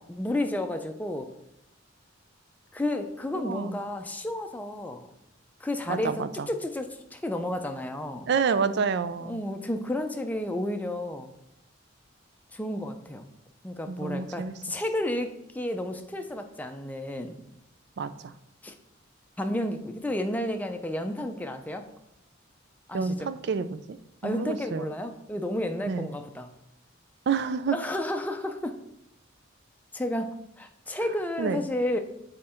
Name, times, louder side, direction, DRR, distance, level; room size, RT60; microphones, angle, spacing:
voice 1, 0.1-1.3 2.7-5.1 5.6-8.3 9.2-11.3 12.5-13.3 13.6-17.4 18.6-18.7 19.4-21.8 22.9-23.3 24.2-26.5 27.7-28.7 29.9-32.0, left 1 dB, 10° left, 5 dB, 0.5 m, -31 dB
voice 2, 3.3-3.8 5.9-6.5 8.3-9.4 13.9-14.5 18.0-18.1 22.9-24.0 24.2-24.9 25.9-26.1 27.3-27.8 31.4-31.6, right 5 dB, 60° right, 13 dB, 0.4 m, -28 dB
7.6 x 3.7 x 4.4 m, 0.84 s
head